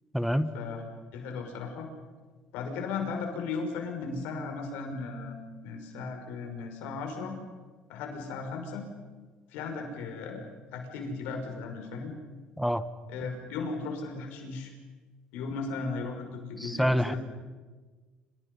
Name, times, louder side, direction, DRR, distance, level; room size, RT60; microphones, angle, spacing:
voice 1, 0.1-0.5 12.6-12.8 16.6-17.1, equal, ahead, 12 dB, 1.3 m, -26 dB
voice 2, 1.1-1.9 2.5-5.4 5.6-7.4 7.9-8.9 9.5-12.2 13.1-14.7 15.3-17.2, left 4 dB, 90° left, 3 dB, 6.1 m, -36 dB
28.5 x 28.0 x 5.6 m, 1.3 s
cardioid pair, 120°, 3 cm